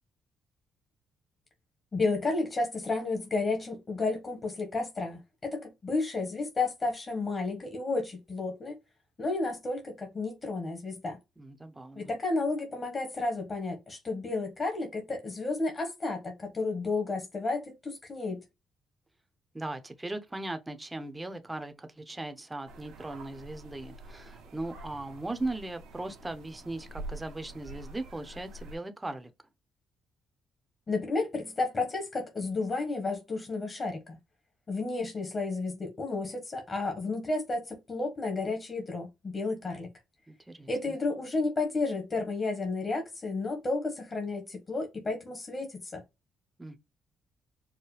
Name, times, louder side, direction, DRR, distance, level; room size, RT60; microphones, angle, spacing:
voice 1, 1.9-8.7 9.2-11.2 11.9-18.4 30.9-34.2 34.7-39.9 40.7-46.0, left 3 dB, 35° left, 1.4 m, -32 dB
voice 2, 11.4-12.1 19.5-29.3 40.3-41.0 46.6-46.8, right 2 dB, 15° right, 0.7 m, -38 dB
sound 1, 22.7-28.8, right 2 dB, 85° right, 1.2 m, -46 dB
4.7 x 2.1 x 3.2 m
cardioid pair, 75°, 0 cm